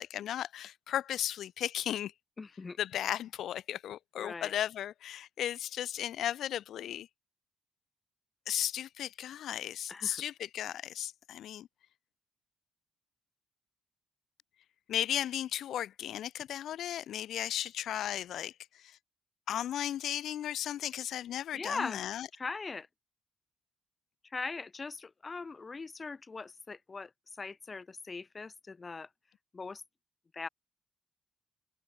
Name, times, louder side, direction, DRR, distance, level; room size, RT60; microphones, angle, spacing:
voice 1, 0.0-2.1 2.8-7.1 8.5-11.7 14.9-19.0 19.5-22.3, left 11 dB, 75° left, 2.0 m, -35 dB
voice 2, 2.4-2.8 4.2-4.5 9.9-10.2 21.5-22.0 22.4-22.9 24.3-27.1 27.4-29.1 29.5-29.8 30.3-30.5, left 4 dB, 30° left, 1.9 m, -40 dB
cardioid pair, 90°, 0 cm